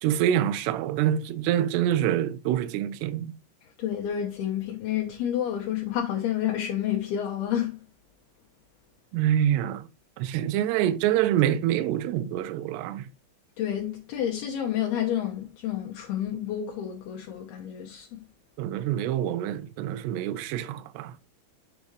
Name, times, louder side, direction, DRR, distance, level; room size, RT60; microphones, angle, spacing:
voice 1, 0.0-3.3 9.1-9.9 10.2-13.1 18.6-21.1, right 11 dB, 80° right, 2.7 m, -26 dB
voice 2, 3.8-7.8 13.6-18.1, left 10 dB, 70° left, 2.7 m, -29 dB
8.2 x 5.1 x 3.2 m
omnidirectional pair, 5.2 m